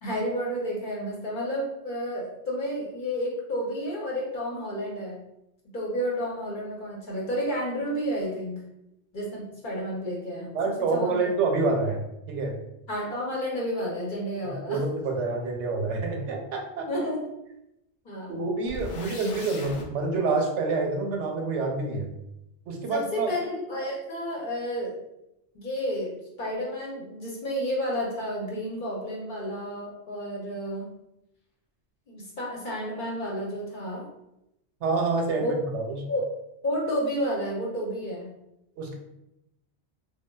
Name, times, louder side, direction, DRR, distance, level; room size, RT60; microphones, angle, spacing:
voice 1, 0.0-5.2 5.7-8.6 9.1-10.5 10.9-11.3 12.9-14.8 16.9-17.2 18.0-18.4 22.9-25.0 25.5-30.9 32.1-34.1 35.4-35.5 36.1-36.2 36.6-38.3, equal, 50° left, -3 dB, 0.8 m, -31 dB
voice 2, 10.5-12.0 12.3-12.5 14.4-16.9 18.3-22.1 22.7-23.3 34.8-36.0 38.8-39.0, right 3 dB, 85° right, 2 dB, 0.9 m, -27 dB
sound 1, 18.7-19.9, left 2 dB, 80° left, 0.9 m, -38 dB
3.4 x 2.1 x 2.2 m, 0.86 s
omnidirectional pair, 1.2 m